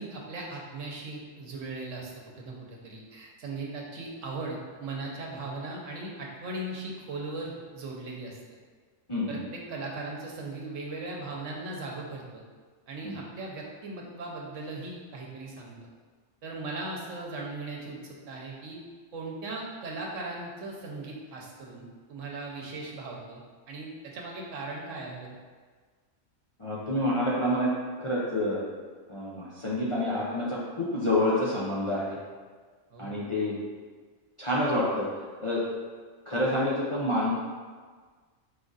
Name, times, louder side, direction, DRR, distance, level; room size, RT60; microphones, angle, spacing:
voice 1, 0.0-8.4 9.3-12.4 12.9-15.9 16.4-18.8 19.1-23.4 23.7-25.4 32.9-33.2, right 2 dB, 80° right, -2 dB, 1.1 m, -38 dB
voice 2, 9.1-9.4 13.0-13.2 26.6-27.7 28.0-28.6 29.1-32.2 33.0-33.6 34.4-35.1 35.4-35.6 36.3-37.3, left 1 dB, 40° left, -7 dB, 0.4 m, -28 dB
5.0 x 3.9 x 2.4 m, 1.5 s
omnidirectional pair, 1.3 m